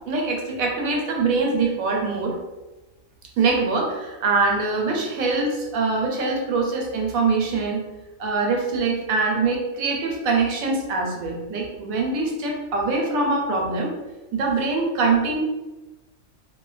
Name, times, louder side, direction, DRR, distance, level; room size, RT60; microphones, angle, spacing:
voice 1, 0.1-2.3 3.4-7.9 8.2-13.9 14.3-15.4, right 3 dB, 85° right, 0 dB, 1.0 m, -23 dB
2.4 x 2.1 x 2.4 m, 1.1 s
omnidirectional pair, 1.4 m